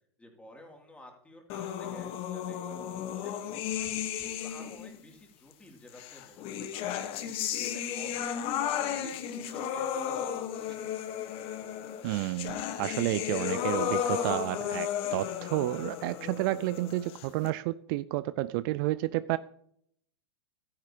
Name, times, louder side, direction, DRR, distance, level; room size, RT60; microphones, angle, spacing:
voice 1, 0.2-2.8 3.2-3.9 4.2-6.8 7.1-7.2 7.6-11.1, left 1 dB, 10° left, 1 dB, 2.5 m, -52 dB
sound 1, 1.5-5.0 6.0-17.5, left 9 dB, 45° left, 1.1 m, -34 dB
voice 2, 12.0-19.4, right 17 dB, 50° right, 16 dB, 0.4 m, -31 dB
12.5 x 10.0 x 2.8 m, 0.68 s
hypercardioid pair, 100°, 14 cm